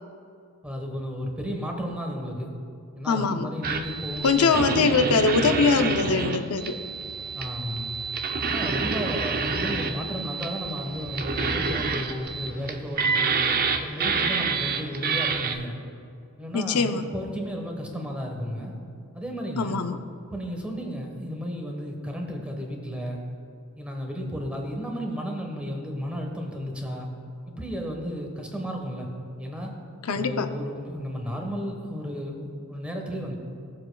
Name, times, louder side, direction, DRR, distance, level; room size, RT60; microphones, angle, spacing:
voice 1, 0.6-2.5 3.0-4.7 7.3-7.8 8.5-13.4 13.8-15.8 16.4-18.7 19.1-19.9 20.3-23.2 23.8-27.1 27.5-29.1 29.4-29.7 30.1-33.4, equal, 5° right, 1 dB, 1.2 m, -33 dB
voice 2, 3.1-3.5 4.2-6.8 16.5-17.0 19.6-20.0 30.1-30.5, left 4 dB, 80° left, 9 dB, 0.6 m, -22 dB
sound 1, 3.6-15.5, right 4 dB, 45° right, 0.6 m, -28 dB
17.0 x 7.5 x 2.3 m, 2.5 s
head